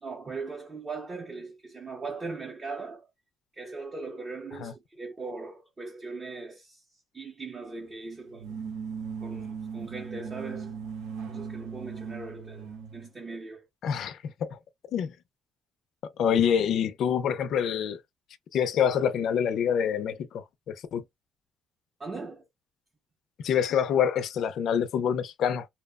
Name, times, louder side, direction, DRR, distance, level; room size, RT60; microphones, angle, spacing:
voice 1, 0.0-3.1 3.5-6.8 7.1-8.5 9.2-10.8 11.3-13.7 22.0-22.4, right 3 dB, 20° right, 0.6 m, -39 dB
sound 1, 8.3-13.1, right 6 dB, 90° right, 0.8 m, -38 dB
voice 2, 13.8-14.6 14.9-15.1 16.0-18.0 18.5-21.0 23.4-25.7, left 8 dB, 55° left, 0.4 m, -26 dB
2.7 x 2.0 x 2.2 m
cardioid pair, 170°, 0 cm